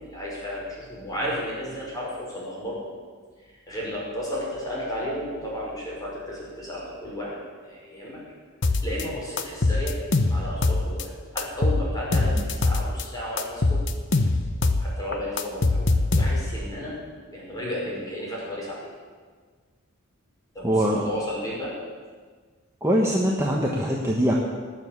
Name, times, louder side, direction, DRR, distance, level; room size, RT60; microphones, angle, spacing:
voice 1, 0.0-2.9 3.4-8.2 8.8-10.0 10.3-13.8 14.8-15.9 16.2-17.0 17.3-18.9 20.5-21.7, equal, 20° left, -5 dB, 5.3 m, -33 dB
sound 1, 8.6-9.0 9.4-11.0 11.4-13.0 13.4-14.9 15.1-16.6, left 2 dB, 60° left, 0.9 m, -23 dB
voice 2, 20.6-21.0 22.8-24.3, equal, 15° right, -2 dB, 1.2 m, -22 dB
18.5 x 7.3 x 7.3 m, 1.5 s
head